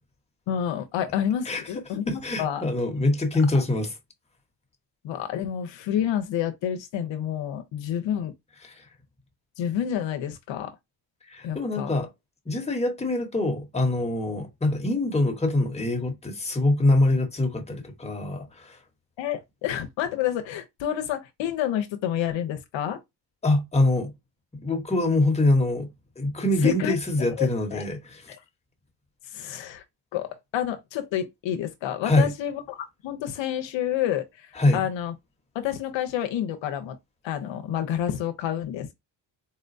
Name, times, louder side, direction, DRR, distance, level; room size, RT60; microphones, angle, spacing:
voice 1, 0.5-2.6 5.0-8.3 9.6-10.8 11.4-11.9 19.2-23.0 26.6-27.0 27.4-27.8 28.3-28.4 29.3-29.8 30.1-32.8 33.0-35.1 35.5-37.0 37.2-38.9, left 10 dB, 75° left, 0.8 m, -29 dB
voice 2, 2.1-3.9 8.6-8.9 11.3-12.1 12.5-18.8 23.4-24.1 24.6-25.9 26.2-28.3 32.0-32.3 34.6-34.8, left 2 dB, 15° left, 1.1 m, -24 dB
4.2 x 2.1 x 2.6 m
cardioid pair, 95°, 45 cm